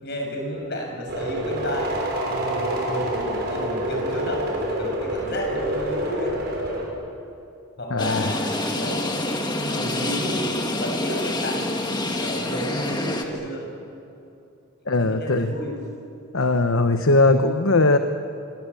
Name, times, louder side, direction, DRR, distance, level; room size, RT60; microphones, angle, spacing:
voice 1, 0.0-4.5 4.8-6.3 7.8-11.8 12.2-13.7 14.9-15.8, equal, 50° left, 2 dB, 6.7 m, -31 dB
sound 1, 1.1-6.8, equal, 50° right, 6.5 m, -27 dB
voice 2, 7.9-8.3 14.9-15.5 16.3-18.0, left 2 dB, 65° left, 7 dB, 1.1 m, -19 dB
sound 2, 8.0-13.3, left 1 dB, 20° left, 2.0 m, -27 dB
26.5 x 23.5 x 8.5 m, 2.7 s
head